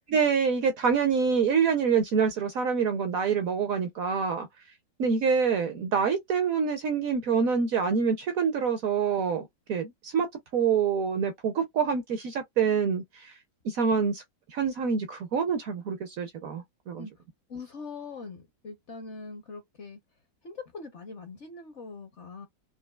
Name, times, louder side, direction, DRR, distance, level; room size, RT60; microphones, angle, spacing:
voice 1, 0.1-4.5 5.0-13.3 13.6-14.2 14.5-17.1, right 6 dB, 65° right, 0.9 m, -26 dB
voice 2, 17.5-20.0 20.4-22.5, left 4 dB, 55° left, 0.8 m, -42 dB
4.5 x 2.6 x 2.2 m
omnidirectional pair, 1.9 m